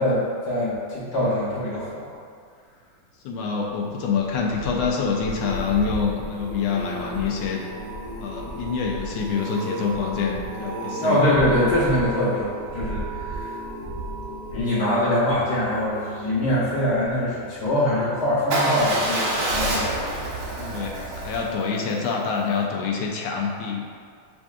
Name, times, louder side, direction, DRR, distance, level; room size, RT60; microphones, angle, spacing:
voice 1, 0.0-2.0 11.0-13.5 14.5-19.9, left 1 dB, 70° left, -8 dB, 1.5 m, -23 dB
voice 2, 3.2-7.6 8.2-11.2 20.6-23.8, left 5 dB, 90° left, -1 dB, 1.3 m, -26 dB
sound 1, 4.1-17.4 18.0-18.3 18.5-18.6, equal, 50° right, 0.7 m, -36 dB
sound 2, 6.8-20.8, right 3 dB, 85° right, 1.7 m, -40 dB
Motorcycle / Engine starting / Idling, 18.5-22.6, right 1 dB, 70° right, 1.4 m, -27 dB
7.6 x 2.6 x 2.4 m, 2.1 s
omnidirectional pair, 2.0 m